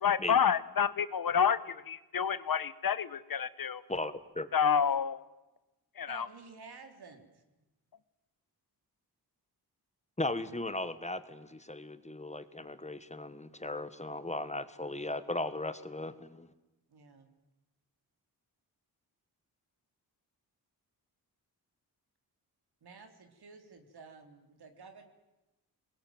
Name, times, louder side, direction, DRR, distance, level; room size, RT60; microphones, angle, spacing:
voice 1, 0.0-3.8 4.5-5.2 6.0-6.3, left 7 dB, 60° left, 16 dB, 1.1 m, -29 dB
voice 2, 3.9-4.5 10.2-16.5, left 2 dB, 15° left, 12 dB, 1.3 m, -37 dB
voice 3, 6.1-7.4 16.9-17.3 22.8-25.0, right 4 dB, 75° right, 6 dB, 3.7 m, -52 dB
26.5 x 21.0 x 9.2 m, 1.0 s
wide cardioid pair, 115°, 39 cm